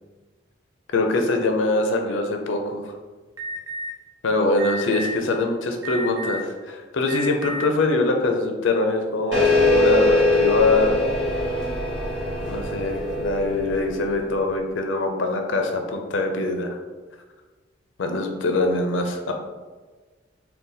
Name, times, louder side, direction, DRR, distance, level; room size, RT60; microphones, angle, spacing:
voice 1, 0.9-2.9 4.2-11.0 12.4-16.8 18.0-19.3, left 2 dB, 85° left, 4 dB, 0.5 m, -23 dB
Alarm, 3.4-3.9 4.6-5.1 5.8-6.5 7.0-7.6, right 1 dB, 15° right, 0.6 m, -31 dB
sound 1, 9.3-14.4, left 2 dB, 70° right, 1.1 m, -22 dB
3.9 x 2.2 x 3.9 m, 1.3 s
head